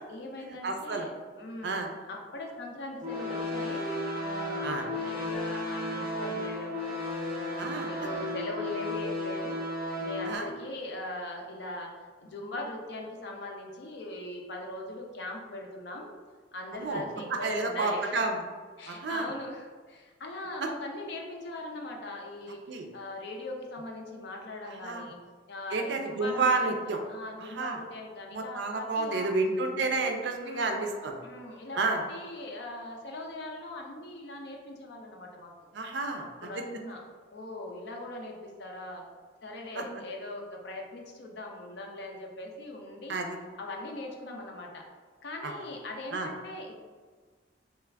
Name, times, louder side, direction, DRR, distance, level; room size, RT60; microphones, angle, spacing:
voice 1, 0.1-1.1 1.4-3.9 4.4-6.9 7.9-11.9 12.2-16.1 16.5-18.2 18.8-22.6 22.9-25.2 25.5-26.8 27.1-29.3 30.3-35.5 36.2-37.0 37.3-39.0 39.4-43.2 43.6-44.8 45.2-46.8, left 2 dB, 65° left, 1 dB, 0.5 m, -40 dB
voice 2, 0.6-1.1 1.6-1.9 4.6-4.9 7.6-7.9 10.2-10.5 16.7-17.0 17.4-18.4 18.9-19.3 22.7-22.9 24.7-25.1 25.7-27.0 27.4-27.8 28.3-31.2 31.8-32.0 35.7-36.2 36.5-36.6 39.7-39.8 43.1-43.4 45.4-45.5 46.1-46.3, right 3 dB, 65° right, 3 dB, 0.4 m, -30 dB
sound 1, 3.0-10.4, left 1 dB, 10° right, 1.0 m, -34 dB
3.1 x 2.3 x 3.3 m, 1.5 s
head